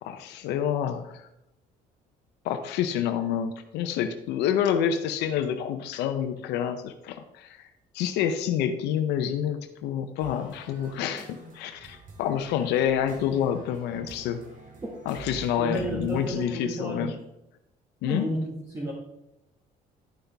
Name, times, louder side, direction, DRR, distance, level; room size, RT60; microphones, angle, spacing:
voice 1, 0.0-1.2 2.4-7.6 7.9-14.4 15.1-17.1 18.0-18.2, left 9 dB, 85° left, 7 dB, 0.7 m, -28 dB
sound 1, 10.2-16.5, right 3 dB, 50° right, 2.1 m, -46 dB
voice 2, 15.6-17.2 18.0-18.9, right 1 dB, 20° right, -4 dB, 1.8 m, -32 dB
11.5 x 5.6 x 3.5 m, 0.84 s
cardioid pair, 110°, 17 cm